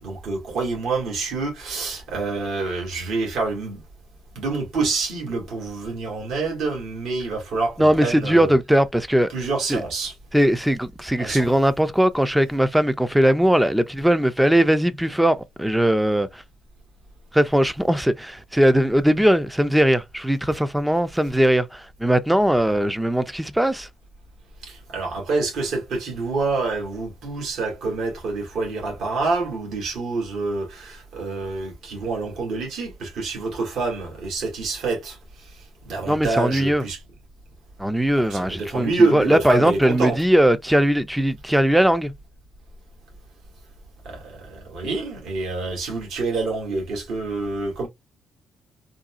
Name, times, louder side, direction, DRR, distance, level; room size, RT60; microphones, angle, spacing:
voice 1, 0.0-3.8 4.4-8.5 9.3-10.1 11.2-11.5 24.6-35.2 35.8-37.0 38.3-40.2 44.1-47.9, right 3 dB, 75° right, 1.9 m, -27 dB
voice 2, 7.8-9.3 9.7-9.8 10.3-16.4 17.3-23.9 36.1-36.9 37.8-42.1, right 1 dB, 5° right, 0.5 m, -19 dB
3.8 x 2.3 x 2.4 m
cardioid pair, 90°, 0 cm